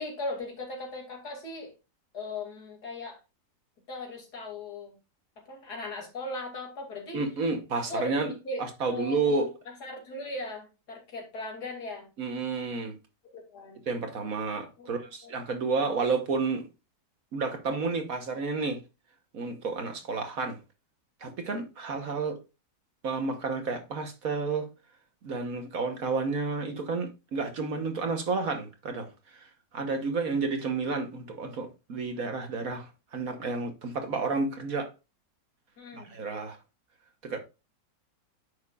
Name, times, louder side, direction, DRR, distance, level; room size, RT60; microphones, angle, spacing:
voice 1, 0.0-1.7 2.1-3.2 3.9-5.0 5.5-7.2 7.7-8.1 8.4-9.5 9.8-12.1 13.2-13.8 14.8-15.3 15.8-15.9 35.8-36.1, left 2 dB, 65° left, 3.0 m, -38 dB
voice 2, 7.1-8.3 8.6-9.5 12.2-13.0 13.9-16.7 17.3-18.8 19.3-20.6 21.2-22.4 23.0-24.7 25.2-29.5 29.7-34.9 35.9-36.6 37.2-37.4, right 4 dB, 55° right, 1.5 m, -31 dB
9.7 x 6.4 x 2.4 m
omnidirectional pair, 1.9 m